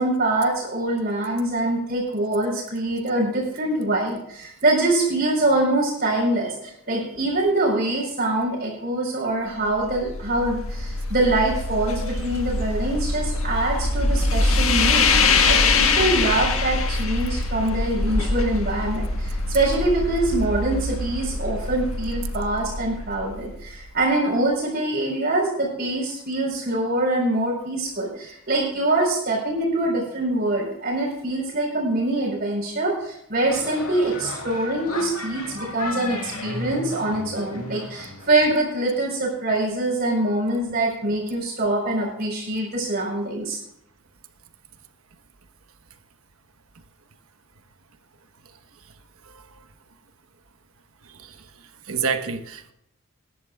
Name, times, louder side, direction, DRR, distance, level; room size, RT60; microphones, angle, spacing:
voice 1, 0.0-15.1 15.5-43.6, right 2 dB, 45° right, -3 dB, 4.3 m, -24 dB
sound 1, 9.7-23.8, left 3 dB, 75° left, 1.5 m, -24 dB
sound 2, 33.5-38.6, left 2 dB, 90° left, 2.3 m, -34 dB
voice 2, 51.0-51.4 51.9-52.7, right 5 dB, 80° right, 7 dB, 1.2 m, -29 dB
20.5 x 11.0 x 2.4 m, 0.76 s
head